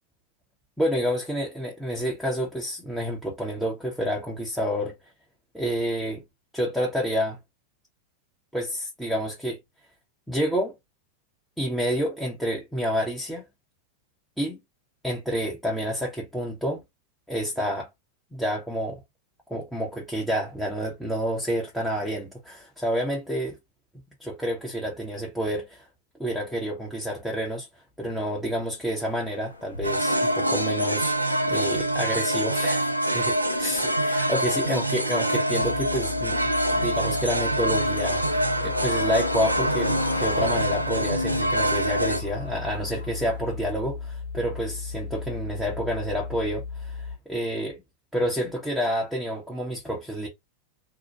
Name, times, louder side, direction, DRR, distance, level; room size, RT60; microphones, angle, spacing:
voice 1, 0.8-4.9 5.5-6.2 6.5-7.4 8.5-9.6 10.3-10.7 11.6-13.4 14.4-14.6 15.0-16.8 17.3-17.9 18.3-19.0 19.5-23.5 24.2-25.9 26.2-27.7 28.0-31.2 31.5-36.4 36.7-47.8 48.1-50.3, equal, ahead, 0.7 m, -29 dB
sound 1, 29.2-43.5, left 2 dB, 85° left, 0.5 m, -38 dB
sound 2, 29.8-42.2, right 1 dB, 85° right, 0.4 m, -25 dB
sound 3, 35.6-47.2, left 5 dB, 35° left, 1.0 m, -36 dB
2.7 x 2.1 x 2.7 m
figure-of-eight pair, 90°, 0 cm